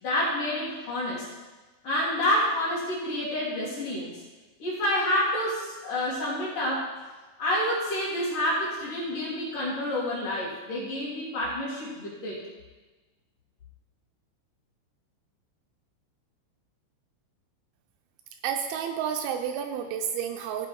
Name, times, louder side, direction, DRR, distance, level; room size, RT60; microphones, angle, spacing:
voice 1, 0.0-1.3 1.8-4.1 4.6-6.9 7.4-12.4, left 1 dB, 50° left, -6 dB, 3.0 m, -28 dB
voice 2, 18.4-20.7, right 8 dB, 80° right, 5 dB, 2.9 m, -30 dB
15.0 x 5.1 x 4.6 m, 1.2 s
omnidirectional pair, 5.6 m